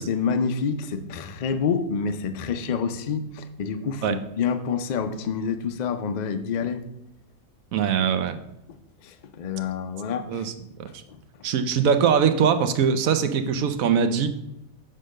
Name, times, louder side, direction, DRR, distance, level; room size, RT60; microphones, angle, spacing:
voice 1, 0.0-6.8 8.7-8.8 9.0-10.5 10.9-11.2, left 6 dB, 80° left, 8 dB, 0.4 m, -28 dB
voice 2, 7.7-8.4 10.3-10.5 11.4-14.3, right 7 dB, 70° right, 9 dB, 1.1 m, -21 dB
6.7 x 3.8 x 6.3 m, 0.84 s
omnidirectional pair, 1.5 m